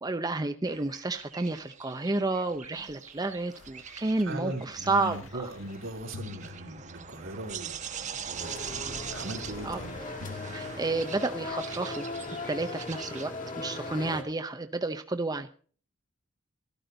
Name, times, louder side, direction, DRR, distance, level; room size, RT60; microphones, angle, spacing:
voice 1, 0.0-5.5 9.6-9.8 10.5-12.1 12.5-15.5, right 2 dB, 20° right, 8 dB, 0.7 m, -31 dB
sound 1, 0.6-13.3, right 7 dB, 40° right, 1.1 m, -43 dB
sound 2, 2.5-7.4 8.1-11.5 12.2-12.3, left 4 dB, 80° left, 0.7 m, -48 dB
voice 2, 4.2-7.8 8.3-10.0, right 1 dB, 80° right, 2 dB, 3.3 m, -39 dB
sound 3, 8.4-14.2, left 2 dB, 45° left, 2.2 m, -38 dB
13.0 x 12.5 x 3.8 m, 0.42 s
head